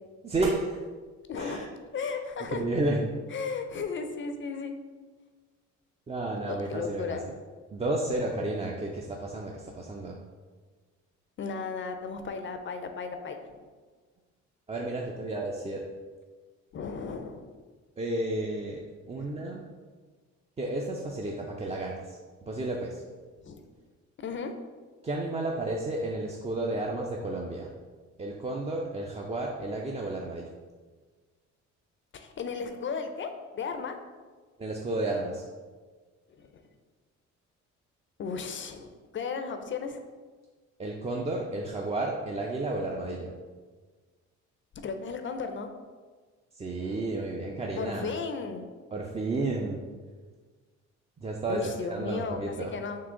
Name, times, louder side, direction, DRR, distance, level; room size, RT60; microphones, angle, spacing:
voice 1, 0.2-0.8 1.4-1.7 2.5-3.0 6.1-7.2 7.7-10.2 14.7-15.9 18.0-19.6 20.6-22.2 22.5-23.0 25.0-27.7 28.2-30.5 34.6-35.4 40.8-43.4 46.5-48.1 48.9-49.9 51.2-52.7, right 2 dB, 20° right, -1 dB, 0.4 m, -32 dB
voice 2, 1.3-2.6 3.3-4.7 6.5-7.2 11.4-13.6 16.7-17.5 19.2-19.3 23.4-23.6 24.2-24.5 32.1-34.0 36.4-36.6 38.2-40.0 44.8-45.7 46.7-47.1 47.8-48.7 51.5-53.0, left 5 dB, 40° left, 7 dB, 0.4 m, -35 dB
3.8 x 2.8 x 3.6 m, 1.4 s
cardioid pair, 90°, 30 cm